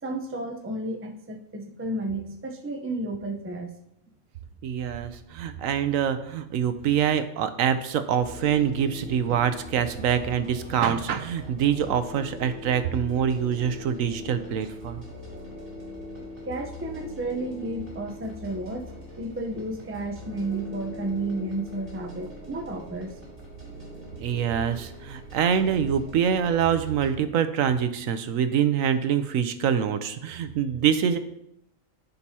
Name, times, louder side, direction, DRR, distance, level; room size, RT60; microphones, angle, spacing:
voice 1, 0.0-3.7 16.5-23.1, right 2 dB, 15° right, 2 dB, 0.5 m, -32 dB
voice 2, 4.6-15.0 24.2-31.2, right 8 dB, 75° right, 10 dB, 1.0 m, -25 dB
sound 1, 8.2-27.1, left 1 dB, 35° right, 3.9 m, -42 dB
14.5 x 5.3 x 2.8 m, 0.79 s
omnidirectional pair, 1.4 m